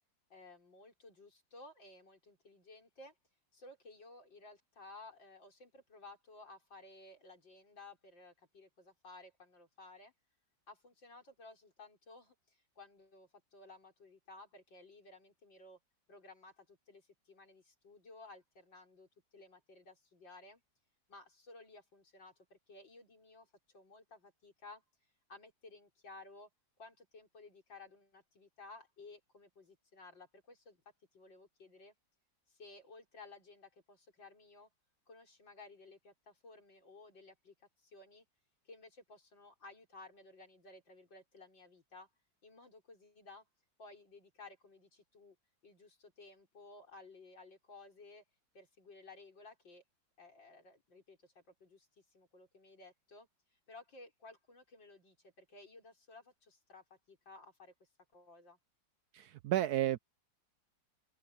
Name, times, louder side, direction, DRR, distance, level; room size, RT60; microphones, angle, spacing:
voice 1, 0.3-3.1 3.5-10.1 10.7-15.8 16.1-20.6 21.1-24.8 25.3-26.5 26.8-30.8 31.1-31.9 32.5-34.7 35.1-38.3 38.7-42.1 42.4-43.5 43.8-45.4 45.6-48.2 48.5-49.8 50.2-53.3 53.7-58.6, left 3 dB, 80° left, 5.9 m, -56 dB
voice 2, 59.1-60.0, right 13 dB, 70° right, 1.0 m, -32 dB
open air
omnidirectional pair, 2.0 m